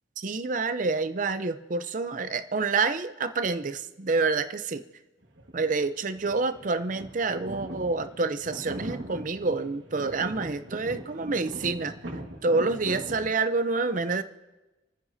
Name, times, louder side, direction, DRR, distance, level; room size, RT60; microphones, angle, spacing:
voice 1, 0.2-4.8 5.5-11.9 12.4-14.2, right 3 dB, 45° right, 11 dB, 0.6 m, -28 dB
sound 1, 5.2-5.8 6.1-13.3, right 1 dB, 70° right, 1.7 m, -40 dB
28.0 x 9.8 x 2.7 m, 1.1 s
head